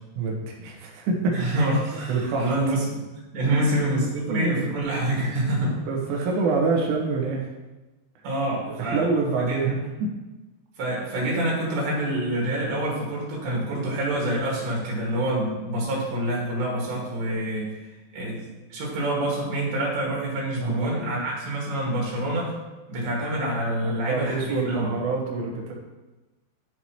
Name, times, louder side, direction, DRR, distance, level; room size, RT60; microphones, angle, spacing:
voice 1, 0.2-1.7 2.1-2.5 3.5-3.7 4.3-4.7 5.9-7.5 8.7-10.1 20.6-21.2 23.8-25.7, right 4 dB, 85° right, -1 dB, 3.9 m, -26 dB
voice 2, 1.3-2.8 3.3-5.8 8.2-9.1 9.4-9.7 10.8-17.7 18.1-22.5 22.9-24.9, right 1 dB, 65° right, -4 dB, 3.6 m, -26 dB
13.0 x 4.6 x 2.9 m, 1.1 s
omnidirectional pair, 5.6 m